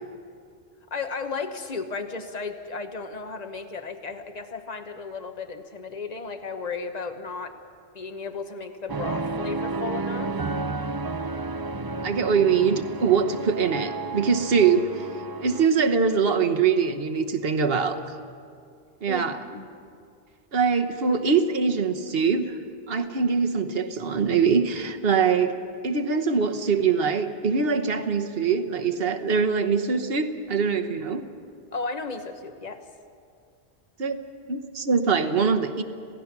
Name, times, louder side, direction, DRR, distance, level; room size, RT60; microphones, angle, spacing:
voice 1, 0.9-7.6 7.9-10.3 19.1-19.6 31.7-32.8, left 4 dB, 40° left, 7 dB, 1.3 m, -34 dB
sound 1, 8.9-15.7, right 3 dB, 30° right, 0.4 m, -32 dB
voice 2, 12.0-15.1 15.4-18.1 19.0-19.4 20.5-22.6 22.9-25.6 25.8-31.2 34.0-34.2 34.5-35.8, right 5 dB, 60° right, 7 dB, 1.3 m, -23 dB
27.0 x 17.0 x 6.0 m, 2.3 s
omnidirectional pair, 1.1 m